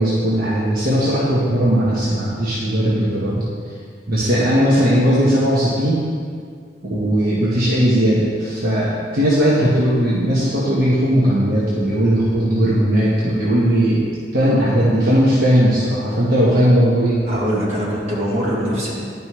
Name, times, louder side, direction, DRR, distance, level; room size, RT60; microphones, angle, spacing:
voice 1, 0.0-3.4 4.1-6.1 6.8-14.0 14.3-17.2, equal, 55° right, -9 dB, 1.3 m, -17 dB
voice 2, 17.3-19.0, equal, 40° right, -7 dB, 1.9 m, -23 dB
11.0 x 5.3 x 3.2 m, 2.1 s
head